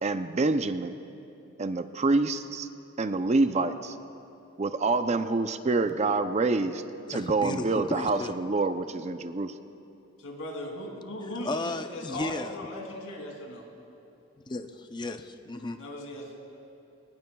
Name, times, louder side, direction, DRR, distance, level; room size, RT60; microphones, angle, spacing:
voice 1, 0.0-1.0 1.6-2.7 3.0-4.0 4.6-6.8 7.1-9.5, right 3 dB, 30° right, 10 dB, 0.5 m, -26 dB
voice 2, 7.1-8.3 11.4-12.6 14.5-15.8, left 2 dB, 20° left, 8 dB, 0.5 m, -34 dB
voice 3, 10.2-13.7 15.8-16.6, left 1 dB, 70° left, 0 dB, 2.7 m, -38 dB
23.0 x 20.0 x 2.3 m, 2.8 s
head